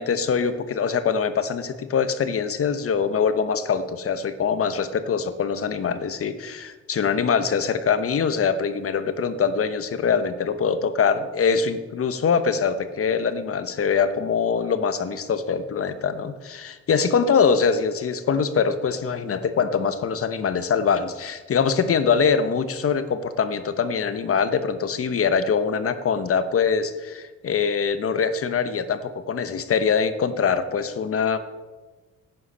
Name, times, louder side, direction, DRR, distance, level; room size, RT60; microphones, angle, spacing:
voice 1, 0.0-31.4, left 6 dB, 50° left, 11 dB, 1.0 m, -23 dB
11.5 x 9.4 x 5.6 m, 1.3 s
cardioid pair, 90°, 30 cm